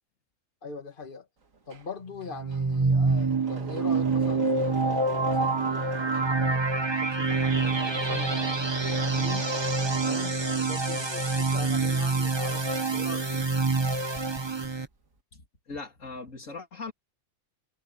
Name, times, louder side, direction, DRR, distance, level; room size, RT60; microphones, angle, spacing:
voice 1, 0.6-1.3 1.7-8.5 8.8-9.5 10.0-13.5, left 3 dB, 40° left, 2.0 m, -41 dB
Engine / Mechanisms, 1.4-11.0 11.4-13.7 14.0-14.7, right 4 dB, 85° right, 2.5 m, -42 dB
sound 1, 2.3-14.9, right 3 dB, 20° right, 1.4 m, -26 dB
voice 2, 15.3-16.9, left 4 dB, 75° left, 3.5 m, -40 dB
omnidirectional pair, 1.3 m